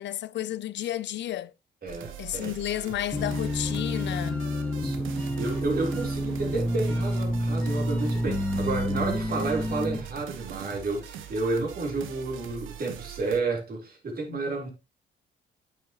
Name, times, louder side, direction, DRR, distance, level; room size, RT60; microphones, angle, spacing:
voice 1, 0.0-1.5 2.2-4.5 14.3-14.4, left 13 dB, 65° left, 0.5 m, -32 dB
voice 2, 1.8-2.5 4.5-14.7, right 3 dB, 50° right, 3.8 m, -31 dB
sound 1, 1.9-13.4, right 10 dB, 80° right, 1.2 m, -42 dB
sound 2, 3.1-10.0, left 1 dB, 5° left, 1.6 m, -29 dB
8.6 x 7.2 x 3.0 m
cardioid pair, 90°, 20 cm